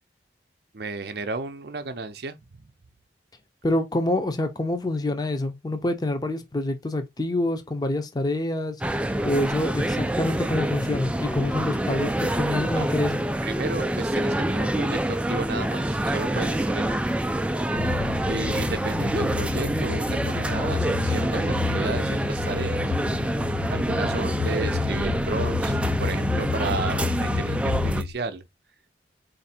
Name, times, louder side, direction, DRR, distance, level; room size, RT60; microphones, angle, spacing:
voice 1, 0.7-2.7 12.8-12.9 13.4-17.1 18.3-22.9 23.7-28.5, right 3 dB, 60° right, 0.5 m, -33 dB
voice 2, 3.6-8.8 9.2-13.2, left 1 dB, 20° left, 0.6 m, -26 dB
sound 1, 8.8-28.0, right 1 dB, 5° right, 0.3 m, -26 dB
sound 2, 17.8-28.1, left 6 dB, 80° left, 0.5 m, -31 dB
4.3 x 2.6 x 4.2 m
head